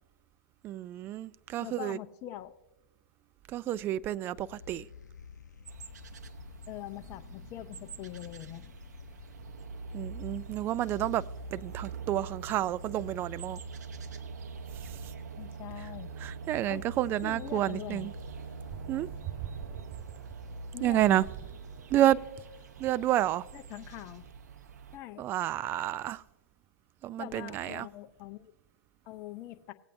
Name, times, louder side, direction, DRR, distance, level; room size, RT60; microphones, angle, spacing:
voice 1, 0.6-2.0 3.5-4.9 9.9-11.2 11.5-13.6 14.8-15.0 16.2-18.1 18.9-19.1 20.8-21.2 21.9-22.2 22.8-23.5 25.2-26.2 27.0-27.9, right 13 dB, 25° right, 0.3 m, -29 dB
voice 2, 1.6-2.6 6.7-8.9 15.4-16.1 16.7-16.8 17.2-18.1 20.7-21.3 23.5-24.3 24.9-25.2 27.2-28.5 29.1-29.7, left 14 dB, 30° left, 0.6 m, -43 dB
sound 1, 4.3-22.4, left 6 dB, 90° left, 0.6 m, -51 dB
sound 2, 5.7-25.0, right 6 dB, 75° right, 0.8 m, -44 dB
Boat Water vehicle, 17.9-23.2, right 2 dB, 5° right, 3.1 m, -61 dB
18.0 x 8.2 x 2.6 m
hypercardioid pair, 130°, 9 cm